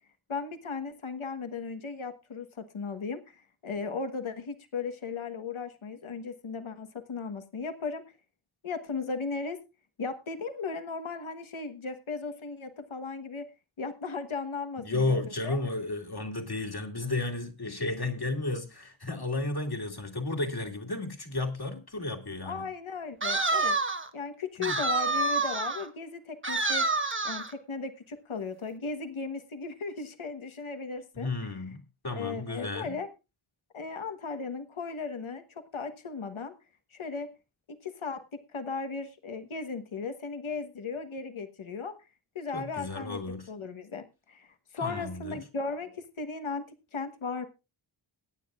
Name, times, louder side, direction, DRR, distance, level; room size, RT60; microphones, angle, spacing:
voice 1, 0.3-8.0 8.6-9.6 10.0-13.5 13.8-15.6 22.4-23.8 24.1-26.9 27.2-31.3 32.1-33.1 33.7-36.5 36.9-37.3 37.7-41.9 42.3-43.2 43.5-47.5, left 4 dB, 70° left, 1.4 m, -36 dB
voice 2, 14.8-22.7 24.6-24.7 31.1-33.0 42.5-43.5 44.8-45.4, left 2 dB, 50° left, 2.5 m, -33 dB
sound 1, 23.2-24.1 24.6-25.9 26.4-27.5, right 3 dB, 25° right, 1.1 m, -28 dB
22.5 x 9.5 x 2.4 m
wide cardioid pair, 60°, 50 cm